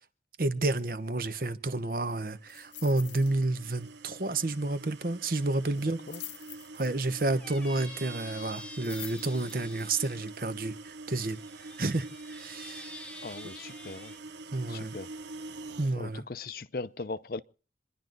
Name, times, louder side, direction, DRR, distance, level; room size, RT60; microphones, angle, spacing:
voice 1, 0.4-6.0 6.7-12.9 14.5-14.9 15.8-16.2, right 2 dB, 50° right, 1.0 m, -30 dB
sound 1, 2.0-16.0, right 3 dB, 85° right, 0.8 m, -46 dB
sound 2, 2.5-3.3 3.6-3.9 4.2-4.3 5.8-7.2 8.5-9.8 10.3-10.4, left 14 dB, 85° left, 0.9 m, -46 dB
Squeak, 7.2-10.3 11.1-14.2, left 1 dB, 5° left, 0.8 m, -48 dB
voice 2, 13.2-14.1 14.7-15.1 16.0-17.4, left 3 dB, 55° left, 0.6 m, -39 dB
27.5 x 11.0 x 3.9 m
head